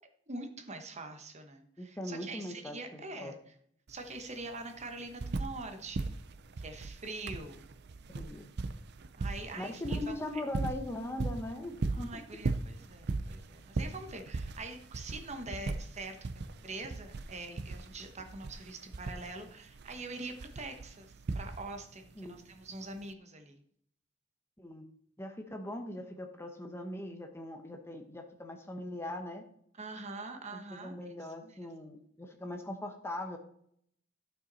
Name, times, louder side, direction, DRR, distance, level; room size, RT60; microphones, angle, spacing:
voice 1, 0.3-3.4 3.9-6.2 6.6-7.6 9.1-10.1 11.9-23.6 29.8-30.9 31.4-31.7, right 2 dB, 35° right, 5 dB, 1.1 m, -44 dB
voice 2, 1.8-3.3 8.1-8.5 9.5-12.2 22.2-22.4 24.6-24.9 25.2-29.4 30.5-33.4, left 1 dB, 15° left, 4 dB, 0.9 m, -40 dB
sound 1, 3.9-4.0 4.2-5.7 5.9-21.9 23.0-23.1, right 3 dB, 60° right, 0.5 m, -38 dB
12.5 x 5.7 x 4.1 m, 0.66 s
head